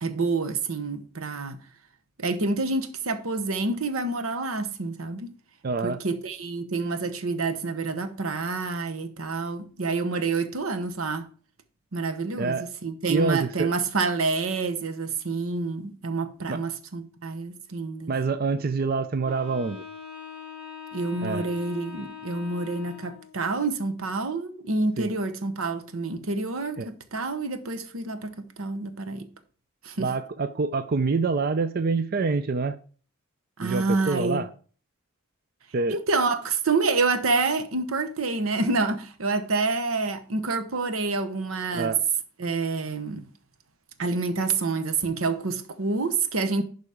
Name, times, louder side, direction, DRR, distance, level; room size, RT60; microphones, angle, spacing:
voice 1, 0.0-1.6 2.2-5.4 5.8-11.3 11.9-18.1 20.9-29.3 29.8-30.1 33.6-34.4 35.9-41.9 42.4-43.3 44.0-46.6, right 3 dB, 90° right, 1.0 m, -28 dB
voice 2, 5.6-6.0 12.4-12.7 13.1-13.7 16.5-16.6 18.1-19.8 21.2-21.5 25.0-25.1 26.8-26.9 30.0-32.8 33.6-34.5 35.7-36.0 41.7-42.0, right 4 dB, 45° right, 0.5 m, -26 dB
Wind instrument woodwind instrument, 19.2-23.4, left 6 dB, 5° right, 2.9 m, -42 dB
11.0 x 4.1 x 4.9 m
head